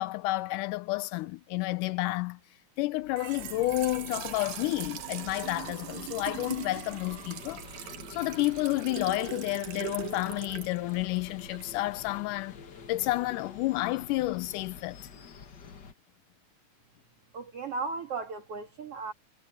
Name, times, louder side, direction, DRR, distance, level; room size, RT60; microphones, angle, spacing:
voice 1, 0.0-2.4 2.8-7.7 8.1-12.5 12.9-15.0, left 19 dB, 90° left, 2.2 m, -30 dB
Trickle dribble / Fill (with liquid), 3.0-11.8, right 12 dB, 75° right, 2.6 m, -41 dB
sound 1, 3.4-15.9, left 6 dB, 45° left, 1.6 m, -48 dB
voice 2, 17.3-19.1, right 4 dB, 50° right, 2.9 m, -36 dB
omnidirectional pair, 3.6 m